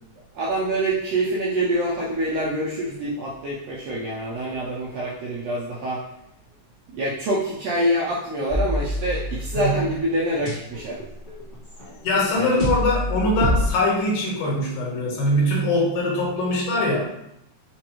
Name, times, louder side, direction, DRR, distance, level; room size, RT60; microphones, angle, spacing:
voice 1, 0.3-6.0 6.9-11.0 12.3-12.6, right 1 dB, 85° right, -5 dB, 1.5 m, -26 dB
sound 1, 8.5-9.9 10.2-13.7, equal, 50° left, 1.1 m, -26 dB
voice 2, 9.5-9.9 12.0-17.1, left 1 dB, 85° left, -3 dB, 2.4 m, -22 dB
5.0 x 2.3 x 2.9 m, 0.82 s
omnidirectional pair, 3.5 m